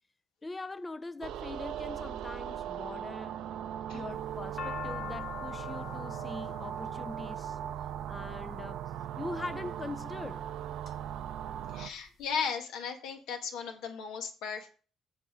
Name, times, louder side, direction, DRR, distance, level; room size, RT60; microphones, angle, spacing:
voice 1, 0.4-3.4 3.9-7.6 8.1-8.8 9.2-10.4, left 2 dB, 15° left, 0.4 m, -42 dB
sound 1, 1.2-11.9, right 10 dB, 80° right, 0.6 m, -39 dB
sound 2, 4.1-8.4 9.2-9.7 10.3-10.9 11.3-11.4 11.5-12.4, left 8 dB, 50° left, 0.9 m, -43 dB
voice 2, 11.7-14.7, left 6 dB, 90° left, 1.8 m, -36 dB
7.6 x 6.8 x 6.1 m
cardioid pair, 125°, 0 cm